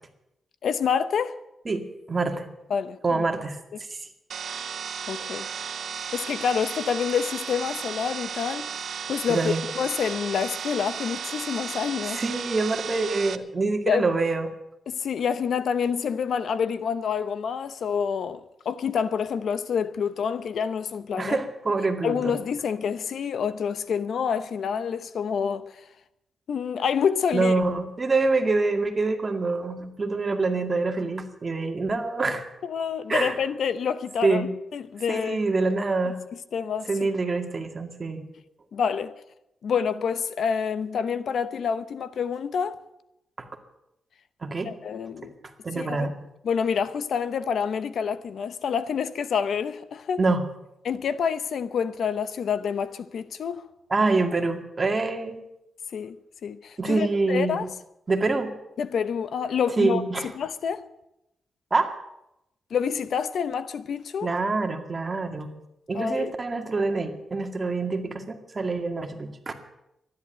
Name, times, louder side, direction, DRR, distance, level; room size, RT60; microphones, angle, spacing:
voice 1, 0.6-1.4 2.7-3.2 5.1-5.5 5.9-8.7 9.1-12.2 13.9-14.1 14.9-21.4 22.0-25.7 26.5-27.5 32.6-35.4 36.5-36.9 38.7-39.1 39.6-42.8 44.7-45.3 45.7-46.1 46.4-50.2 50.8-53.6 55.9-56.2 56.4-57.7 58.8-60.9 62.7-64.3 65.9-66.3, left 7 dB, 75° left, 0.8 m, -27 dB
voice 2, 1.7-2.5 3.0-3.6 4.0-4.1 9.3-9.6 12.1-14.5 21.2-22.4 27.3-32.4 33.1-33.4 34.2-34.5 35.1-36.2 36.9-38.2 44.4-44.7 45.6-46.1 50.2-50.4 53.9-55.4 56.8-57.6 58.1-58.5 59.8-60.3 61.7-61.9 64.2-65.5 65.9-69.5, right 3 dB, 30° right, 2.1 m, -25 dB
sound 1, 4.3-13.4, right 7 dB, 70° right, 0.9 m, -34 dB
13.0 x 10.5 x 9.1 m
cardioid pair, 95°, 0 cm